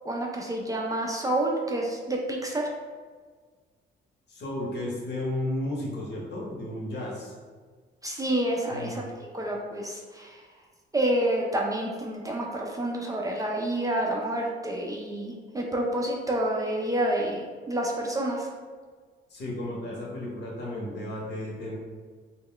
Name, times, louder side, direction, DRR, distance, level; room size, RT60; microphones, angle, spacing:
voice 1, 0.1-2.7 8.0-9.0 9.3-10.4 10.9-18.5, right 1 dB, 20° right, -1 dB, 0.3 m, -28 dB
voice 2, 4.3-7.3 8.7-9.0 19.3-21.8, left 1 dB, 60° left, -4 dB, 0.9 m, -33 dB
2.2 x 2.1 x 3.6 m, 1.5 s
cardioid pair, 90°, 20 cm